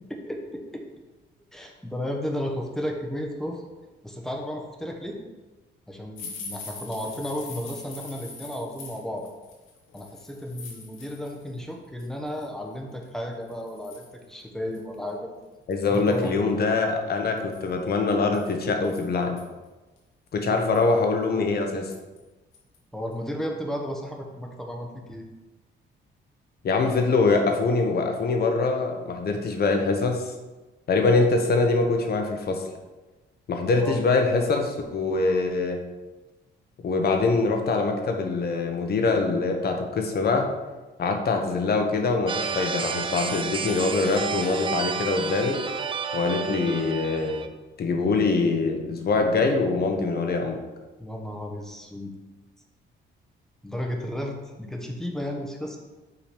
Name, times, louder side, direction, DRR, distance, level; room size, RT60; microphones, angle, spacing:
voice 1, 0.1-0.8 1.5-3.6 4.0-5.2 5.9-9.3 9.9-15.3 15.9-16.7 22.9-25.2 33.7-34.0 51.0-52.1 53.6-55.8, equal, ahead, 1 dB, 1.1 m, -33 dB
sound 1, 6.2-11.5 11.9-12.5 13.0-13.1 13.5-14.2 14.7-14.8 15.1-15.2 15.7-16.4 17.4-19.4 20.0-20.1 20.4-21.0 21.9-22.2 22.5-22.8 23.1-23.2, left 4 dB, 90° left, 1.4 m, -43 dB
voice 2, 15.7-19.4 20.3-21.9 26.6-30.3 30.9-32.6 33.5-35.8 36.8-40.5 41.0-45.6 46.1-47.4 47.8-50.6, left 3 dB, 55° left, 3 dB, 1.0 m, -24 dB
sound 2, 42.3-47.5, right 6 dB, 25° right, 0.5 m, -31 dB
5.8 x 4.0 x 5.1 m, 1.2 s
cardioid pair, 90°, 20 cm